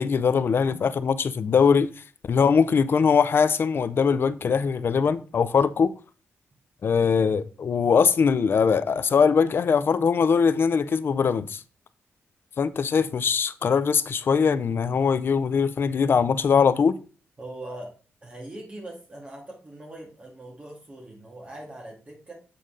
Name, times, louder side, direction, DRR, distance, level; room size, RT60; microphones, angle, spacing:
voice 1, 0.0-1.9 2.3-5.9 6.8-11.6 12.6-17.0, left 6 dB, 55° left, 0.5 m, -21 dB
voice 2, 17.4-17.9 18.2-22.3, right 1 dB, 30° right, 1.9 m, -41 dB
8.4 x 3.9 x 3.7 m
cardioid pair, 100°, 5 cm